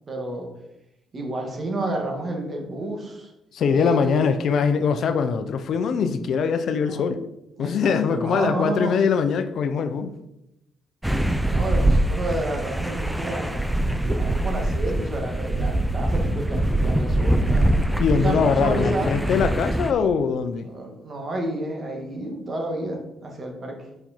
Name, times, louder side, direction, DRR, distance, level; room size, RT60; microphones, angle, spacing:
voice 1, 0.1-0.5 1.1-3.3 3.7-4.3 6.9-7.0 7.6-8.9 11.4-17.8 18.2-19.2 20.6-23.8, right 1 dB, 40° right, 2.2 m, -30 dB
voice 2, 3.5-7.2 7.6-10.1 18.0-20.7, left 6 dB, 65° left, 0.7 m, -22 dB
sound 1, 11.0-19.9, right 1 dB, 5° right, 0.6 m, -23 dB
6.9 x 5.4 x 4.5 m
cardioid pair, 90°, 0 cm